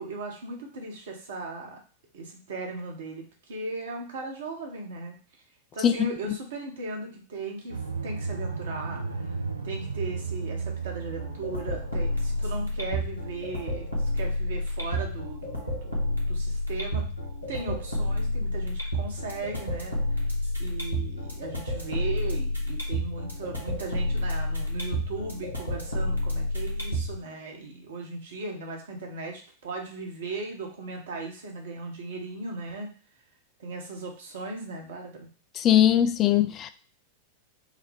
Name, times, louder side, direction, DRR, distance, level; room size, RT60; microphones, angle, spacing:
voice 1, 0.0-1.8 2.1-5.2 5.7-9.4 9.6-17.1 17.5-20.3 20.6-32.9 33.6-35.3, right 3 dB, 60° right, 1.0 m, -37 dB
sound 1, 7.7-12.7, right 4 dB, 85° right, 0.4 m, -34 dB
sound 2, 11.2-27.2, left 1 dB, 90° left, 1.0 m, -30 dB
voice 2, 35.6-36.7, left 10 dB, 30° left, 0.3 m, -20 dB
4.9 x 2.2 x 3.5 m
figure-of-eight pair, 90°, 0 cm